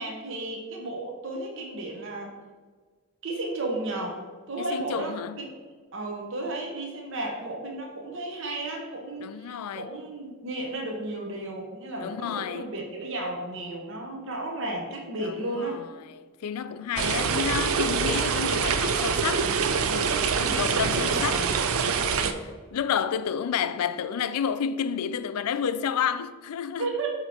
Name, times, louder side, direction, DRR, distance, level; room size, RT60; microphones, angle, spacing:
voice 1, 0.0-2.3 3.2-4.2 4.5-5.5 5.9-15.8 20.4-21.5 26.8-27.1, right 2 dB, 55° right, 0.9 m, -34 dB
voice 2, 4.6-5.4 9.2-9.9 12.0-12.7 15.2-19.4 19.9-20.3 20.6-21.4 21.9-26.9, left 8 dB, 85° left, 0.3 m, -30 dB
sound 1, 17.0-22.3, right 6 dB, 70° right, 0.4 m, -25 dB
7.6 x 2.9 x 4.2 m
head